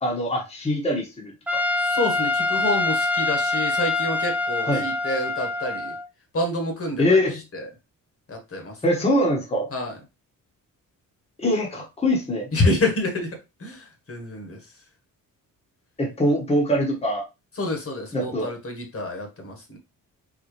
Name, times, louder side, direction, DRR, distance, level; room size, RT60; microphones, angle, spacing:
voice 1, 0.0-1.6 4.7-4.9 7.0-7.4 8.8-9.7 11.4-12.5 16.0-17.2 18.1-18.5, left 1 dB, 15° left, -2 dB, 1.3 m, -23 dB
Trumpet, 1.5-6.1, left 2 dB, 5° right, 0.4 m, -25 dB
voice 2, 1.8-5.9 6.3-7.2 7.5-7.6 8.3-8.7 9.7-9.9 12.5-13.3 13.6-14.6 17.6-19.8, left 2 dB, 40° left, 3 dB, 1.5 m, -27 dB
4.2 x 3.9 x 3.2 m, 0.25 s
wide cardioid pair, 150°, 34 cm